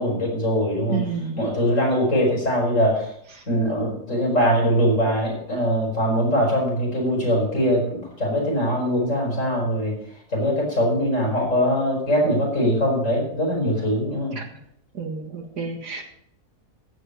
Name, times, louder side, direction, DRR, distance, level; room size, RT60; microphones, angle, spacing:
voice 1, 0.0-1.0 1.4-3.1 3.5-10.0 10.3-14.4, equal, 50° left, -3 dB, 6.5 m, -22 dB
voice 2, 0.9-1.4 14.3-14.4 14.9-16.0, right 5 dB, 80° right, 4 dB, 2.5 m, -30 dB
15.0 x 5.5 x 8.7 m, 0.68 s
omnidirectional pair, 1.7 m